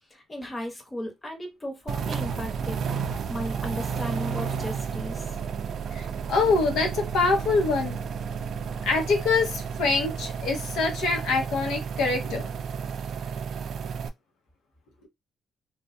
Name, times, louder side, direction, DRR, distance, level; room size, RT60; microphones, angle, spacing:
voice 1, 0.1-2.8 3.3-5.4, equal, 15° left, 0.9 m, -36 dB
sound 1, 1.9-14.1, right 6 dB, 60° right, 0.3 m, -32 dB
voice 2, 5.9-8.0 8.9-12.6, left 4 dB, 85° left, 0.8 m, -25 dB
2.4 x 2.2 x 2.5 m
cardioid pair, 90°, 0 cm